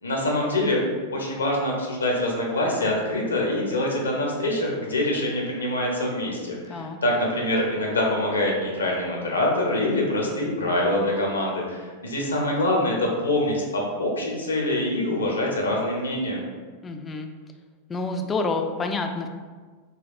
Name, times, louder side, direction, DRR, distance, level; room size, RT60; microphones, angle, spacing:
voice 1, 0.0-0.8 1.1-16.4, left 1 dB, 75° left, -1 dB, 0.7 m, -25 dB
voice 2, 16.8-17.3 17.9-19.3, left 3 dB, 20° left, 5 dB, 0.3 m, -28 dB
4.0 x 2.3 x 2.5 m, 1.5 s
figure-of-eight pair, 90°, 0 cm